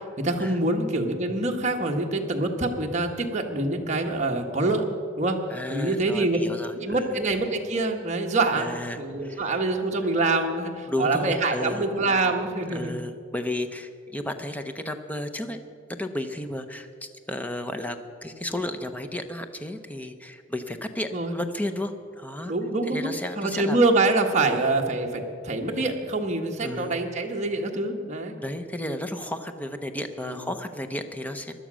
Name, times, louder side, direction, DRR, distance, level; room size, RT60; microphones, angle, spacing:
voice 1, 0.2-4.9 5.2-5.4 5.7-6.4 6.8-13.0 21.1-21.3 22.5-23.1 23.4-28.4 30.2-30.4, right 2 dB, 35° right, 1 dB, 1.4 m, -25 dB
voice 2, 5.5-7.2 8.6-9.6 10.9-11.9 12.7-15.6 15.9-18.0 18.2-22.5 22.9-23.8 24.4-24.7 26.6-27.0 28.4-31.5, left 1 dB, 10° left, 8 dB, 0.7 m, -33 dB
16.5 x 11.5 x 6.2 m, 2.3 s
head